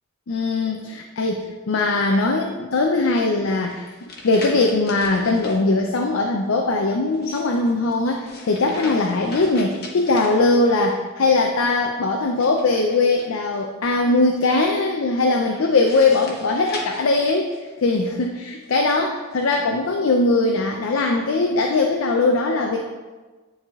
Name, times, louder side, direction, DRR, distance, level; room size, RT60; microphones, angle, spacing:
voice 1, 0.3-17.5 17.8-22.8, left 3 dB, 70° left, 2 dB, 0.5 m, -20 dB
sound 1, 3.6-5.6 7.0-10.9 12.3-13.6 15.5-17.9 18.6-19.6, left 2 dB, 45° left, 1.0 m, -39 dB
9.8 x 3.5 x 3.5 m, 1.3 s
head